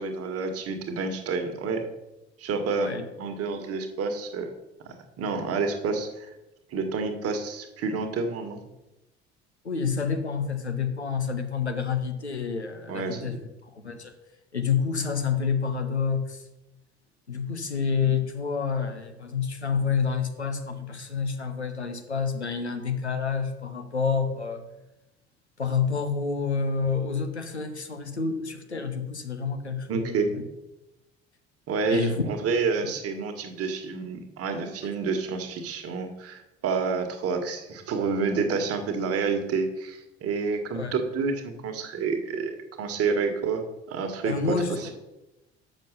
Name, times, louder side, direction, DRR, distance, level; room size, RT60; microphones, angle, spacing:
voice 1, 0.0-1.8 2.4-2.9 3.2-4.5 5.2-6.3 6.7-8.6 12.9-13.3 29.9-30.3 31.7-42.5 42.8-44.9, right 4 dB, 45° right, 6 dB, 1.5 m, -29 dB
voice 2, 9.6-14.1 14.5-16.4 17.3-24.7 25.6-30.4 31.9-32.2 32.8-32.9 40.7-40.9 44.2-44.9, left 5 dB, 90° left, 6 dB, 0.8 m, -28 dB
6.5 x 6.3 x 6.7 m, 0.99 s
figure-of-eight pair, 55°, 32 cm